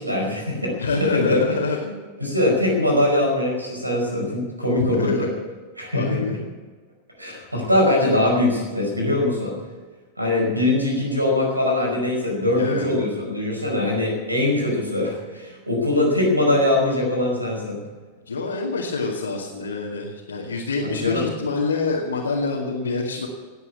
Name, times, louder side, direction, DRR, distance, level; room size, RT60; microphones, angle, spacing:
voice 1, 0.0-1.4 2.2-5.3 5.8-6.4 7.2-9.5 10.2-17.8 20.8-21.2, left 1 dB, 85° right, 0 dB, 5.1 m, -22 dB
voice 2, 0.8-2.0 4.7-5.3 5.9-6.5 7.2-7.3 12.5-12.9 18.3-23.3, left 3 dB, 75° left, -3 dB, 2.0 m, -26 dB
18.0 x 8.2 x 8.4 m, 1.4 s
figure-of-eight pair, 90°, 0 cm